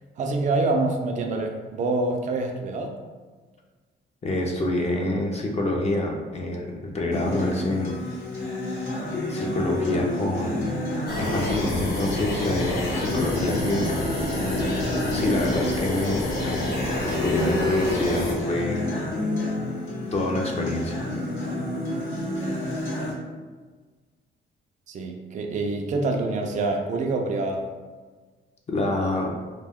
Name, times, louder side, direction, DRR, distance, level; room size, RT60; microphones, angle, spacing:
voice 1, 0.2-2.9 24.9-27.6, right 3 dB, 40° right, 3 dB, 0.4 m, -26 dB
voice 2, 4.2-8.0 9.3-10.8 11.1-14.0 15.1-19.0 20.1-21.1 28.7-29.3, left 2 dB, 35° left, 0 dB, 0.5 m, -27 dB
Acoustic guitar, 7.1-23.1, left 1 dB, 80° left, 0.8 m, -29 dB
sound 1, 11.1-18.3, left 1 dB, 55° left, 0.9 m, -28 dB
2.2 x 2.2 x 3.4 m, 1.4 s
cardioid pair, 90°, 20 cm